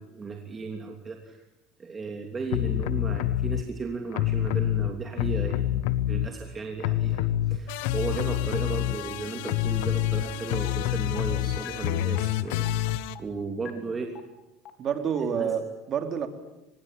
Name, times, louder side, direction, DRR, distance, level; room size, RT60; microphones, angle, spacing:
voice 1, 0.0-1.4 1.8-14.2 15.2-15.5, right 4 dB, 25° right, 3 dB, 3.1 m, -35 dB
sound 1, 2.5-3.6 4.1-6.5 6.8-13.1, left 13 dB, 80° left, 1.2 m, -27 dB
sound 2, 10.6-10.7 11.1-11.2 11.6-11.7 12.1-12.2 12.6-12.7 13.1-13.2 13.6-13.7 14.1-14.2 14.6-14.7 15.1-15.2, left 11 dB, 50° left, 3.8 m, -42 dB
voice 2, 14.8-16.3, right 7 dB, 45° right, 7 dB, 3.6 m, -28 dB
24.5 x 20.5 x 10.0 m, 0.97 s
supercardioid pair, 100°, 0 cm